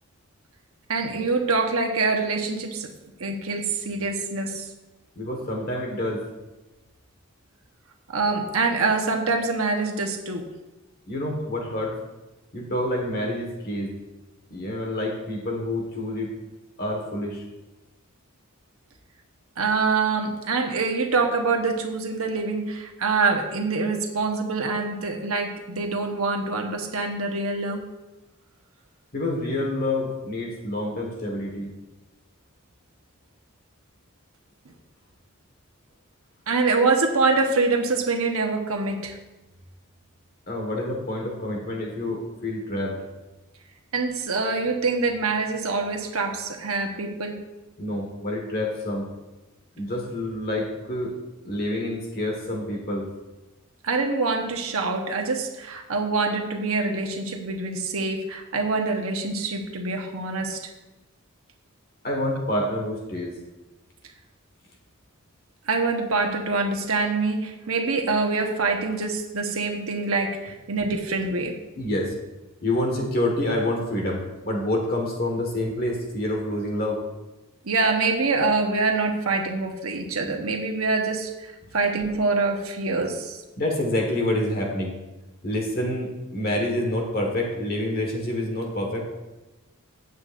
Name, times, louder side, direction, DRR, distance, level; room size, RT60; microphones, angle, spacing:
voice 1, 0.9-2.9 3.2-4.7 8.1-10.4 19.6-27.9 36.5-39.2 43.9-47.4 53.8-60.7 65.7-71.5 77.6-83.4, right 3 dB, 80° right, 2 dB, 1.1 m, -25 dB
voice 2, 5.2-6.3 11.1-12.0 12.5-14.0 14.5-16.3 16.8-17.5 29.1-31.7 40.5-43.1 47.8-49.1 49.8-51.1 51.5-53.1 62.0-63.4 71.7-72.1 72.6-77.0 81.6-81.7 83.6-85.0 85.4-89.1, left 1 dB, 45° left, 0 dB, 1.6 m, -27 dB
15.5 x 8.2 x 2.6 m, 1.1 s
head